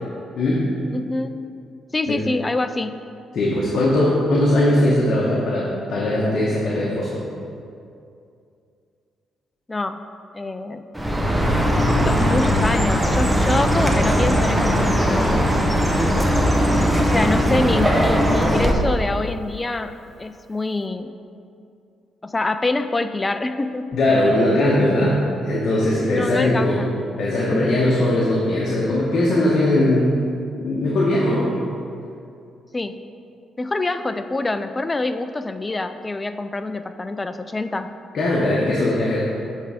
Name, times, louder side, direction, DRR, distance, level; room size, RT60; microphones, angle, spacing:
voice 1, 0.3-0.7 2.1-2.2 3.3-7.2 11.8-12.3 23.9-26.8 27.2-30.1 30.6-31.6 38.1-39.2, left 1 dB, 60° left, -5 dB, 1.0 m, -20 dB
voice 2, 0.9-1.4 1.9-3.0 9.7-10.0 10.3-10.9 12.0-15.5 17.0-21.1 22.2-23.9 26.0-26.9 32.7-32.9 33.6-37.9, left 2 dB, 20° left, 10 dB, 0.3 m, -25 dB
Chirp tweet, 10.9-18.7, equal, 5° right, 0.7 m, -19 dB
8.1 x 3.4 x 4.9 m, 2.5 s
cardioid pair, 90°, 0 cm